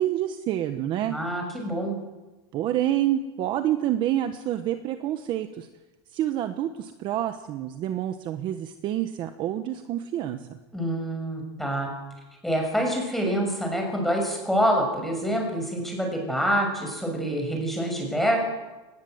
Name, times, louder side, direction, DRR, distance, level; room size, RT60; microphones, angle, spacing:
voice 1, 0.0-1.2 2.5-5.7 6.1-10.6, right 12 dB, 35° right, 8 dB, 1.2 m, -28 dB
voice 2, 1.0-2.0 10.7-11.9 12.4-18.4, equal, ahead, 1 dB, 6.5 m, -26 dB
23.5 x 19.5 x 8.1 m, 1.2 s
supercardioid pair, 160°, 14 cm